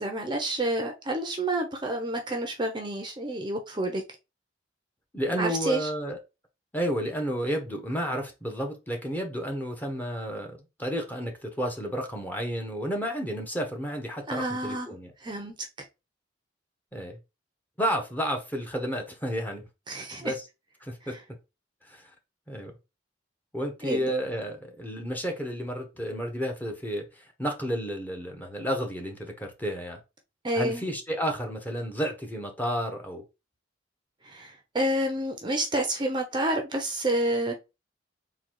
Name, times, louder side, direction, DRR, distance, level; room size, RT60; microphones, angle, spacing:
voice 1, 0.0-4.0 5.4-5.9 14.3-14.9 15.2-15.5 19.9-20.3 21.1-21.2 23.8-24.1 30.4-30.8 34.2-37.6, right 1 dB, 25° right, 0.6 m, -29 dB
voice 2, 5.1-6.2 6.7-15.1 16.9-17.2 17.8-19.7 19.9-20.4 20.8-21.2 21.8-22.1 22.5-22.7 23.5-30.0 30.5-33.2, equal, 10° left, 0.9 m, -31 dB
3.9 x 2.3 x 4.5 m
head